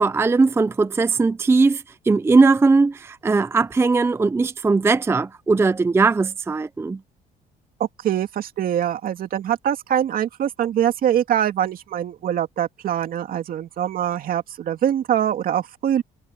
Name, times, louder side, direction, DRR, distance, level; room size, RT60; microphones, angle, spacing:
voice 1, 0.0-7.0, right 4 dB, 15° right, 0.5 m, -19 dB
voice 2, 7.8-16.0, right 10 dB, 60° right, 2.6 m, -23 dB
cardioid pair, 110°, 17 cm